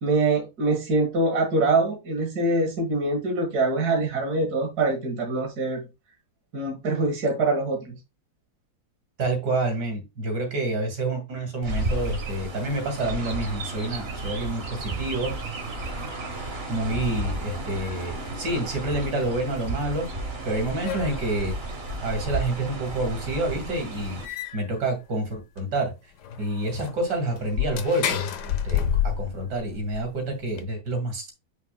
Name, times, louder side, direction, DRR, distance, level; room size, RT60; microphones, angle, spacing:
voice 1, 0.0-5.8 6.5-8.0, right 2 dB, 65° right, 2.2 m, -24 dB
voice 2, 9.2-15.3 16.3-20.1 20.5-21.5 22.0-25.9 26.4-31.3, right 2 dB, 85° right, 2.9 m, -28 dB
Chirp tweet, 11.6-24.3, right 2 dB, 40° right, 1.5 m, -33 dB
sound 1, 17.8-18.3 18.8-18.9 20.2-20.3 20.5-21.5 22.2-22.3 22.7-22.8 23.3-23.4 23.7-23.8 24.2-24.8 25.3-25.4 25.6-25.7 26.2-30.6, left 9 dB, 75° left, 1.4 m, -30 dB
7.9 x 5.8 x 2.2 m
omnidirectional pair, 1.8 m